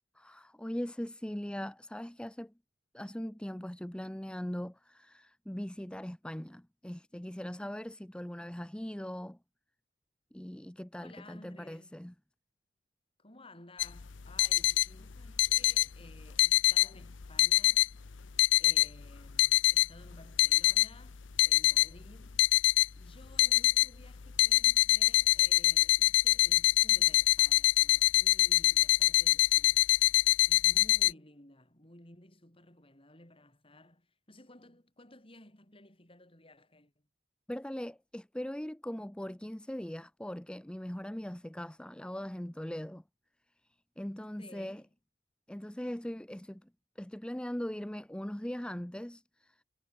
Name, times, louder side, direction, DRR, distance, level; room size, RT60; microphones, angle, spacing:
voice 1, 0.2-2.5 2.9-9.4 10.3-12.1 37.5-43.0 44.0-44.8 45.5-46.7 47.0-49.6, equal, 5° left, 0.6 m, -40 dB
voice 2, 11.0-12.0 13.2-17.9 18.6-22.5 22.9-29.9 30.4-36.9 44.4-44.9, left 1 dB, 30° left, 6.2 m, -56 dB
sound 1, 13.8-31.1, left 17 dB, 85° left, 0.7 m, -25 dB
head